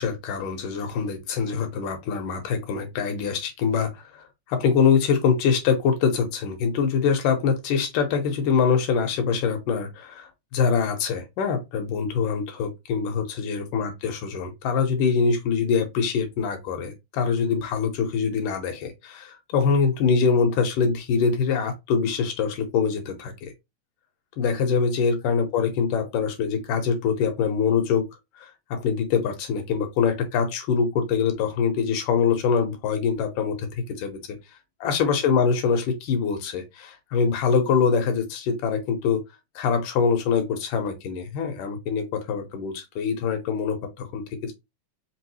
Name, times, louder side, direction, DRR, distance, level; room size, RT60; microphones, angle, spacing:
voice 1, 0.0-23.5 24.4-28.1 28.4-34.4 34.8-39.2 39.6-44.5, left 6 dB, 85° left, 2.5 m, -24 dB
5.2 x 3.0 x 3.1 m
omnidirectional pair, 3.7 m